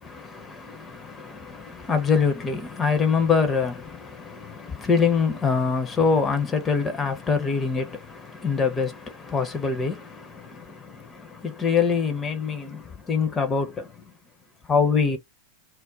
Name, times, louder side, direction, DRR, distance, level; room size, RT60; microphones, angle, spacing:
voice 1, 0.0-14.1 14.7-15.2, left 5 dB, 20° left, 0.6 m, -25 dB
2.4 x 2.0 x 2.6 m
figure-of-eight pair, 90°, 0 cm